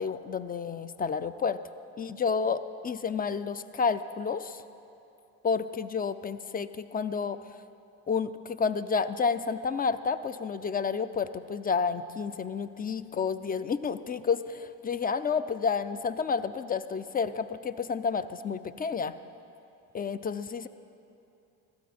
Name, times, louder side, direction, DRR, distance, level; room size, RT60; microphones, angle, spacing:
voice 1, 0.0-1.6 2.0-4.6 5.4-7.4 8.1-19.2 19.9-20.7, left 5 dB, 25° left, 14 dB, 0.4 m, -30 dB
15.5 x 12.5 x 4.3 m, 2.8 s
supercardioid pair, 80°, 39 cm